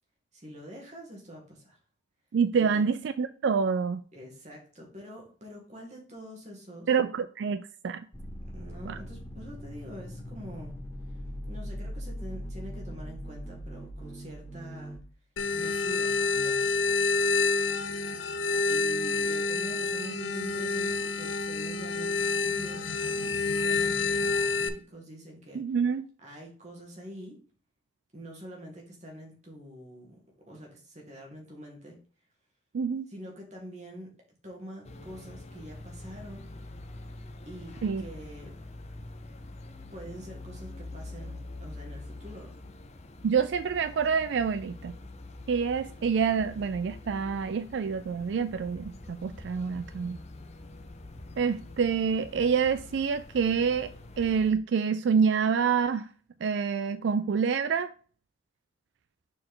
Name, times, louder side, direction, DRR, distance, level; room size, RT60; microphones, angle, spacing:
voice 1, 0.3-1.8 2.6-2.8 4.1-6.9 8.5-10.7 11.5-15.0 15.5-17.1 18.5-25.8 26.2-27.4 28.1-30.2 30.5-32.0 33.1-34.2 34.4-36.5 37.5-38.6 39.9-42.5, equal, 35° right, 1.9 m, -45 dB
voice 2, 2.3-4.0 6.9-8.0 8.9-9.0 25.5-26.0 32.7-33.1 37.8-38.0 43.2-44.9 45.5-50.2 51.4-53.9 54.2-56.1 56.4-57.9, right 6 dB, 65° right, 0.3 m, -27 dB
sound 1, 8.1-15.0, equal, 15° left, 2.0 m, -40 dB
sound 2, 15.4-24.7, left 4 dB, 80° left, 0.7 m, -28 dB
sound 3, 34.9-54.5, left 2 dB, 35° left, 0.6 m, -45 dB
6.3 x 4.4 x 3.8 m
head